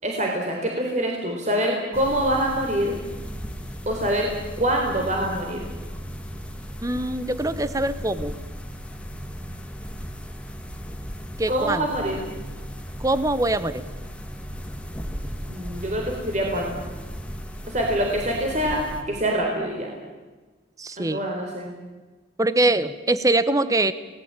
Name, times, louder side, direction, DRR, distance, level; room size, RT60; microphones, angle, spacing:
voice 1, 0.0-2.9 3.9-4.3 4.6-5.6 11.5-12.3 15.4-16.9 17.7-19.9 21.0-21.7, right 1 dB, 35° right, 0 dB, 4.0 m, -25 dB
sound 1, 1.9-19.0, equal, 5° left, 2.0 m, -36 dB
voice 2, 6.8-8.3 11.4-11.9 13.0-13.8 20.8-21.2 22.4-23.9, right 2 dB, 15° right, 14 dB, 0.9 m, -23 dB
28.5 x 19.5 x 8.9 m, 1.3 s
head